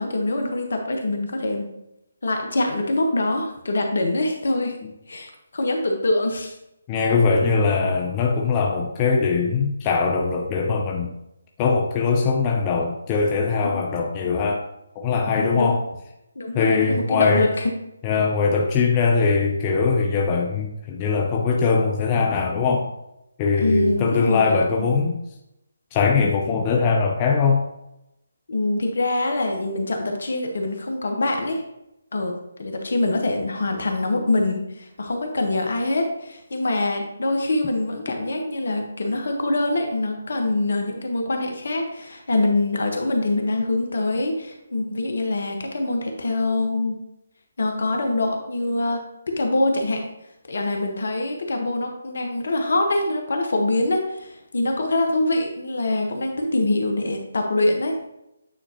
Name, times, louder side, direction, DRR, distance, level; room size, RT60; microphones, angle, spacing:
voice 1, 0.0-1.7 2.2-4.8 5.1-6.5 13.6-13.8 15.3-15.7 16.3-17.7 23.6-24.9 28.5-31.6 32.1-32.3 32.6-47.0 47.6-50.0 50.5-58.1, left 2 dB, 65° left, 3 dB, 1.3 m, -24 dB
voice 2, 6.9-11.1 11.6-14.6 15.0-15.8 16.5-17.5 18.0-22.9 23.4-25.1 25.9-27.7, left 4 dB, 25° left, 0 dB, 0.6 m, -21 dB
8.9 x 3.9 x 3.0 m, 0.86 s
figure-of-eight pair, 150°, 0 cm